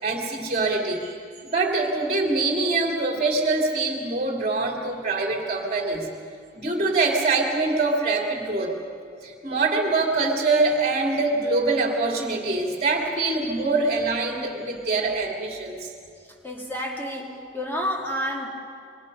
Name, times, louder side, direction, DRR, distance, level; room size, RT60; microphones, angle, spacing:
voice 1, 0.0-1.1 1.5-6.1 6.5-8.8 9.2-15.9, right 3 dB, 30° right, 0 dB, 2.6 m, -24 dB
voice 2, 16.4-18.5, equal, 10° left, -1 dB, 2.6 m, -30 dB
27.5 x 24.0 x 5.4 m, 2.3 s
head